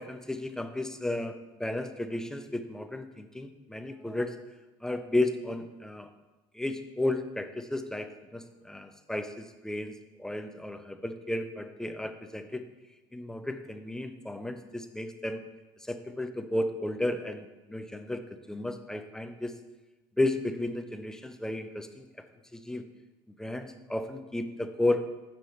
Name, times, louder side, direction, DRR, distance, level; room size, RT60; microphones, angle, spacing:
voice 1, 0.0-4.3 4.8-6.1 6.5-12.6 13.1-15.4 15.8-19.5 20.2-22.1 22.5-22.8 23.4-25.0, left 1 dB, 5° left, 8 dB, 0.5 m, -33 dB
6.1 x 5.6 x 4.3 m, 1.1 s
supercardioid pair, 100°, 11 cm